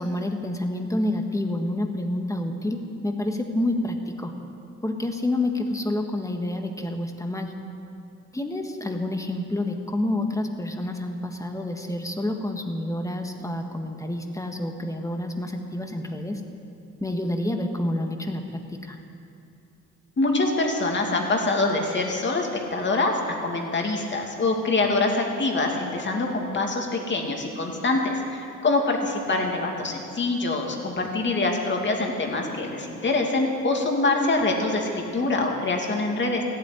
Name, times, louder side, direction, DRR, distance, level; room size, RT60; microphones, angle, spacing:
voice 1, 0.0-4.3 4.8-7.5 8.3-16.4 17.0-19.0, left 1 dB, 10° left, 4 dB, 1.6 m, -28 dB
voice 2, 20.2-36.4, left 2 dB, 40° left, 1 dB, 2.6 m, -25 dB
14.5 x 8.7 x 9.8 m, 2.6 s
cardioid pair, 90°, 30 cm